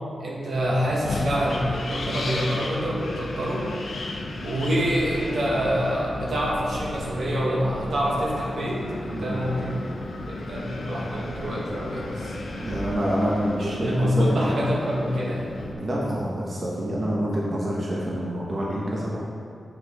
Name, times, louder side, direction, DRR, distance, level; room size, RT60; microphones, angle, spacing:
voice 1, 0.2-3.7 4.4-9.7 10.3-12.3 13.5-15.5, equal, 70° right, -4 dB, 1.3 m, -26 dB
Wind, 0.6-15.7, left 2 dB, 75° left, 0.8 m, -35 dB
sound 1, 4.6-13.9, equal, 15° left, 1.1 m, -39 dB
voice 2, 12.6-14.5 15.8-19.2, equal, 45° right, -5 dB, 1.1 m, -27 dB
7.5 x 6.6 x 3.6 m, 2.4 s
wide cardioid pair, 135°, 0 cm